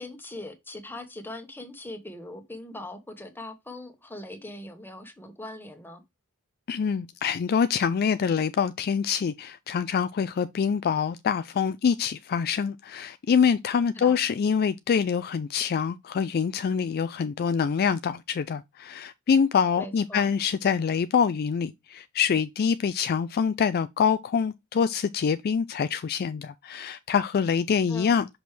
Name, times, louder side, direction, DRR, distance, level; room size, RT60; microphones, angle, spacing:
voice 1, 0.0-6.0 13.9-14.2 19.8-20.3 27.9-28.2, left 1 dB, 10° left, 1.3 m, -41 dB
voice 2, 6.7-28.3, left 6 dB, 45° left, 0.3 m, -25 dB
6.1 x 5.1 x 3.3 m
head